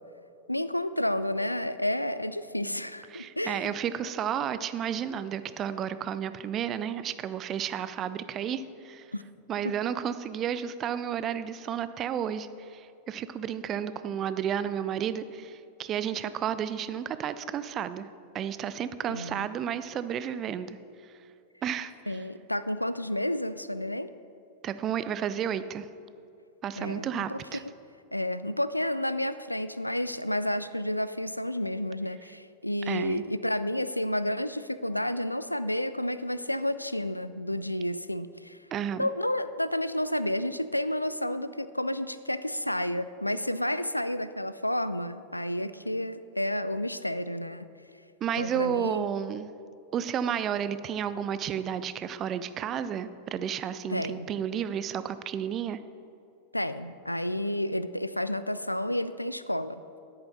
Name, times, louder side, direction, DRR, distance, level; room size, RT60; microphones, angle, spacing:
voice 1, 0.5-3.7 9.1-9.2 9.6-9.7 19.1-19.5 22.1-24.1 26.8-27.7 28.1-38.6 39.0-47.7 48.3-49.0 53.9-54.3 56.5-59.8, left 1 dB, 85° left, 14 dB, 0.3 m, -31 dB
voice 2, 3.1-9.1 9.5-18.1 18.3-20.8 21.0-21.1 21.6-22.2 24.6-25.9 26.6-27.6 32.9-33.2 38.7-39.1 48.2-49.5 49.9-55.8, right 9 dB, 30° right, 13 dB, 0.4 m, -32 dB
10.5 x 8.8 x 3.9 m, 2.5 s
figure-of-eight pair, 90°, 0 cm